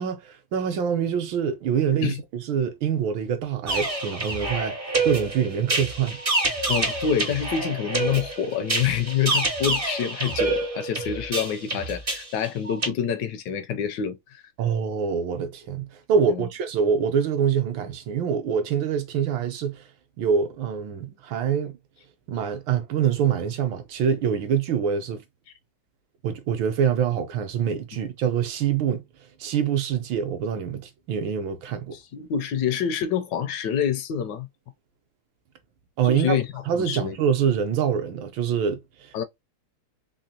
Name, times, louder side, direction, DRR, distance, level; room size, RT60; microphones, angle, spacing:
voice 1, 0.0-4.8 5.0-6.2 14.6-19.8 20.2-21.7 22.3-25.2 26.2-29.0 29.4-32.0 36.0-36.4 36.7-38.8, right 7 dB, 75° right, 1.4 m, -25 dB
sound 1, 3.7-12.9, right 2 dB, 40° right, 0.5 m, -27 dB
voice 2, 6.7-14.2 16.2-16.5 31.9-34.5 36.0-37.1 39.1-39.2, left 8 dB, 70° left, 1.1 m, -27 dB
3.8 x 2.9 x 2.7 m
omnidirectional pair, 2.2 m